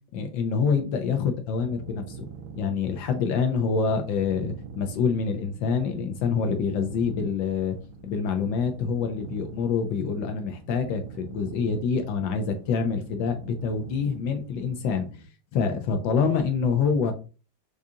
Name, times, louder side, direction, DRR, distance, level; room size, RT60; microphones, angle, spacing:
voice 1, 0.1-2.3 2.6-7.8 8.0-15.1 15.5-17.1, left 5 dB, 75° left, 6 dB, 1.1 m, -26 dB
sound 1, 1.5-15.3, right 6 dB, 80° right, 1.8 m, -45 dB
4.9 x 2.4 x 2.6 m, 0.35 s
omnidirectional pair, 2.4 m